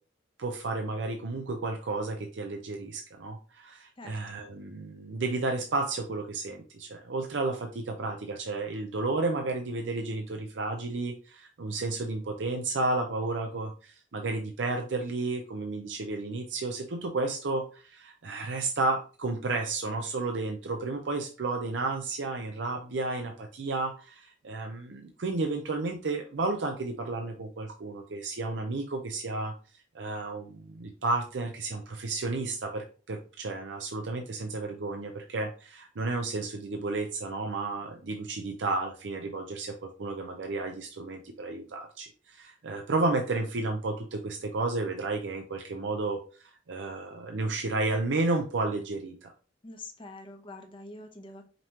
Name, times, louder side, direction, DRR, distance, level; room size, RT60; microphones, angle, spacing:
voice 1, 0.4-29.5 29.9-46.2 46.7-49.3, right 3 dB, 75° right, 4 dB, 0.5 m, -32 dB
voice 2, 4.0-4.4 49.6-51.4, left 2 dB, 30° left, 5 dB, 0.7 m, -45 dB
5.2 x 2.9 x 2.9 m, 0.36 s
head